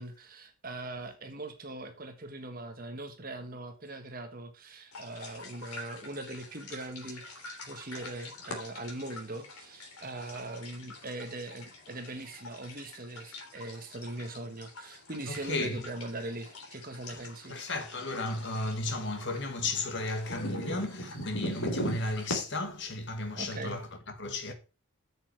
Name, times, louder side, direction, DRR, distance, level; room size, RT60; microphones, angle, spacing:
voice 1, 0.0-17.6 23.4-23.8, right 2 dB, 40° right, 1.4 m, -41 dB
sound 1, 4.9-22.4, equal, 85° left, 3.3 m, -42 dB
voice 2, 15.3-15.8 17.1-17.2 17.5-24.5, left 2 dB, 55° left, 2.0 m, -34 dB
8.6 x 6.6 x 4.7 m
head